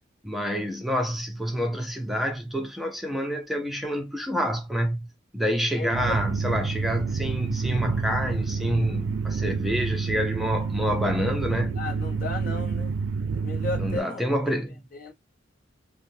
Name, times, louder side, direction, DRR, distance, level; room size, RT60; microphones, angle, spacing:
voice 1, 0.2-5.1 5.3-11.8 13.8-14.7, equal, ahead, 0.5 m, -28 dB
voice 2, 5.8-6.2 11.8-13.0 13.3-14.5 14.9-15.1, left 3 dB, 50° left, 0.8 m, -35 dB
sound 1, 5.9-14.0, right 5 dB, 75° right, 0.4 m, -28 dB
3.4 x 2.1 x 2.6 m
head